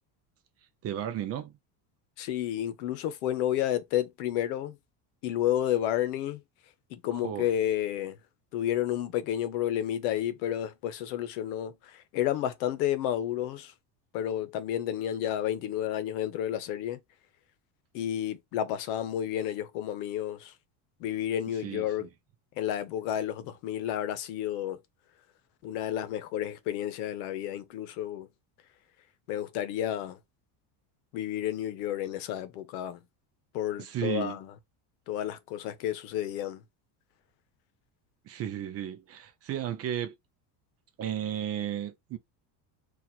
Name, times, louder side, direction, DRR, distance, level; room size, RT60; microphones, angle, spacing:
voice 1, 0.8-1.6 7.1-7.5 21.6-22.1 33.8-34.4 38.2-40.1 41.0-42.2, right 10 dB, 35° right, 0.4 m, -34 dB
voice 2, 2.2-4.8 5.2-6.4 6.9-8.2 8.5-13.7 14.1-17.0 17.9-20.5 21.0-22.1 22.6-24.8 25.6-28.3 29.3-30.2 31.1-33.0 33.5-34.5 35.1-36.6, left 11 dB, 90° left, 0.9 m, -31 dB
2.9 x 2.5 x 4.1 m
cardioid pair, 150°, 46 cm